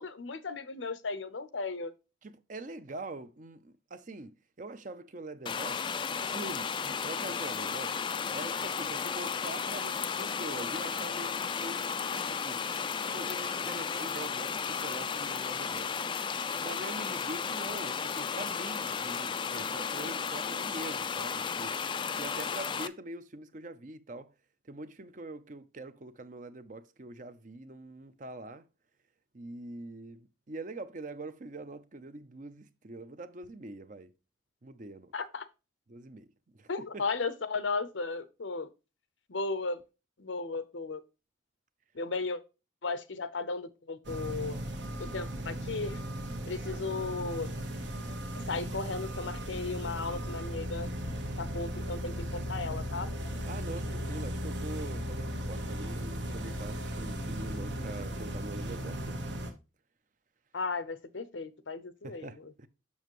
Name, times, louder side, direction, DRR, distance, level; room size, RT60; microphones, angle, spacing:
voice 1, 0.0-1.9 35.1-35.5 36.7-38.7 39.3-39.8 40.2-41.0 41.9-42.4 42.8-44.6 45.0-46.0 46.5-47.5 48.5-50.9 51.4-53.1 60.5-62.3, left 4 dB, 90° left, 0.8 m, -35 dB
voice 2, 2.2-5.9 6.3-8.0 8.3-12.6 13.0-16.0 16.6-21.9 22.2-24.3 24.6-28.6 29.3-34.1 34.6-35.1 35.9-36.3 36.5-37.0 53.5-59.2 62.0-62.7, right 2 dB, 45° right, 0.6 m, -44 dB
sound 1, 5.5-22.9, left 6 dB, 25° left, 0.3 m, -34 dB
sound 2, 44.0-59.5, equal, 75° right, 1.4 m, -36 dB
7.1 x 6.6 x 3.0 m
head